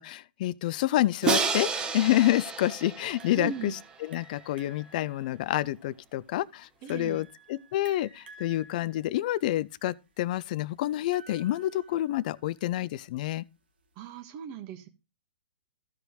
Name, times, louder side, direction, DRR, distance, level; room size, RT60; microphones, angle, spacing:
voice 1, 0.0-13.4, left 14 dB, 50° left, 0.4 m, -28 dB
Crash cymbal, 1.2-4.2, right 5 dB, 15° right, 1.0 m, -30 dB
sound 1, 3.2-12.5, right 2 dB, 80° right, 2.0 m, -54 dB
voice 2, 3.3-3.8 6.8-7.2 14.0-14.9, right 7 dB, 40° right, 1.5 m, -38 dB
14.5 x 5.1 x 3.1 m
hypercardioid pair, 130°, 6 cm